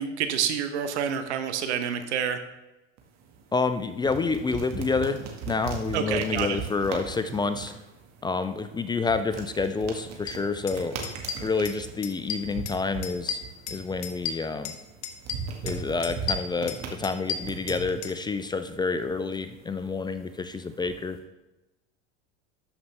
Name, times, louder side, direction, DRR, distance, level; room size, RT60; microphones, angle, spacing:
voice 1, 0.0-2.4 5.9-6.6, right 8 dB, 85° right, 8 dB, 1.1 m, -28 dB
sound 1, 3.0-21.2, right 6 dB, 50° right, 1.9 m, -40 dB
voice 2, 3.5-7.7 8.2-11.0 11.4-13.4 13.7-14.8 15.6-21.2, left 4 dB, 15° left, 10 dB, 0.4 m, -28 dB
sound 2, 10.3-10.4 10.7-10.8 11.0-11.8 12.0-12.8 13.0-14.8 15.0-15.8 16.0-18.1, left 7 dB, 60° left, 1.2 m, -33 dB
13.0 x 5.4 x 3.4 m, 1.0 s
hypercardioid pair, 100°, 33 cm